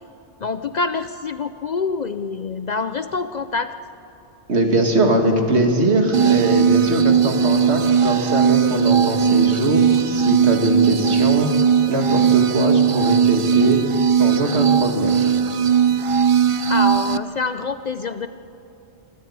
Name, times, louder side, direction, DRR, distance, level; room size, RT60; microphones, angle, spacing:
voice 1, 0.4-3.7 16.7-18.3, left 4 dB, 50° left, 11 dB, 0.5 m, -26 dB
voice 2, 4.5-11.5 11.9-13.8 14.1-15.3, right 1 dB, 75° right, 3 dB, 2.3 m, -21 dB
sound 1, 6.1-17.2, right 7 dB, 50° right, 0.4 m, -18 dB
24.5 x 13.5 x 8.7 m, 2.9 s
omnidirectional pair, 1.1 m